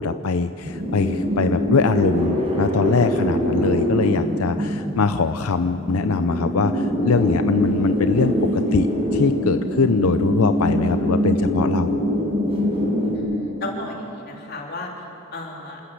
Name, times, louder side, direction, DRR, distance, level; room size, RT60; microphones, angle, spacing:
voice 1, 0.0-12.0, left 4 dB, 85° left, 10 dB, 0.6 m, -22 dB
sound 1, 0.6-13.2, equal, 25° right, 5.1 m, -23 dB
voice 2, 13.1-15.0 15.3-15.8, left 2 dB, 45° left, -1 dB, 3.4 m, -34 dB
27.5 x 13.5 x 8.3 m, 2.9 s
head